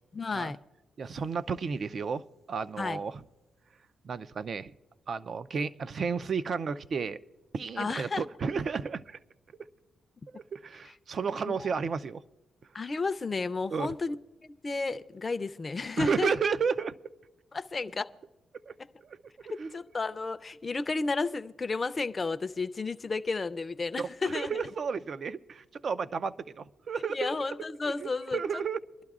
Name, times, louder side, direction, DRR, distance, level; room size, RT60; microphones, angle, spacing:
voice 1, 0.1-0.6 2.8-3.0 7.8-8.2 11.5-11.6 12.7-14.2 14.4-16.3 17.5-18.1 19.5-24.5 27.1-28.4, left 3 dB, 30° left, 0.5 m, -32 dB
voice 2, 1.0-2.2 2.5-3.2 4.0-4.7 5.1-7.2 7.5-9.2 10.3-12.2 13.7-13.9 16.0-16.9 18.7-18.8 19.0-19.2 19.6-19.8 24.0-27.4 28.0-28.8, right 5 dB, 50° right, 0.5 m, -32 dB
25.5 x 12.0 x 2.4 m
cardioid pair, 95°, 0 cm